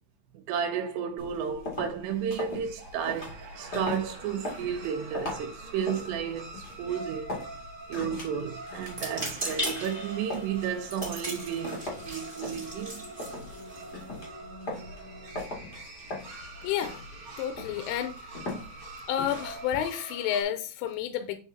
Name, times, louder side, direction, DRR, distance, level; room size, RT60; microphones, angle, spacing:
voice 1, 0.3-7.4 7.9-13.0, right 8 dB, 75° right, 2.6 m, -33 dB
sound 1, 1.2-19.7, left 2 dB, 60° left, 1.0 m, -41 dB
sound 2, 2.2-20.4, right 2 dB, 45° right, 2.0 m, -45 dB
sound 3, 8.9-14.2, equal, 25° right, 1.2 m, -38 dB
voice 2, 16.6-17.1 17.4-18.2 19.1-21.4, left 10 dB, 85° left, 3.2 m, -30 dB
9.2 x 4.6 x 2.7 m
omnidirectional pair, 5.6 m